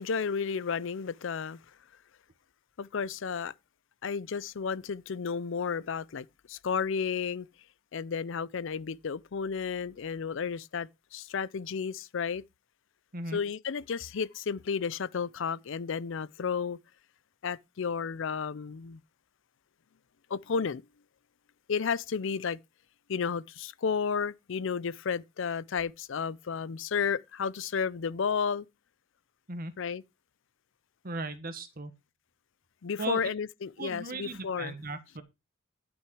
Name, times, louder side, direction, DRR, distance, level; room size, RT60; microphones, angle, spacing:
voice 1, 0.0-1.6 2.8-3.5 4.0-7.5 7.9-12.4 13.3-16.8 17.4-19.0 20.3-20.8 21.7-22.6 23.1-28.7 29.8-30.0 32.8-34.7, left 6 dB, 65° left, 0.5 m, -32 dB
voice 2, 31.0-31.9 33.0-33.2 33.8-35.2, right 2 dB, 45° right, 1.5 m, -37 dB
11.5 x 6.3 x 4.8 m
head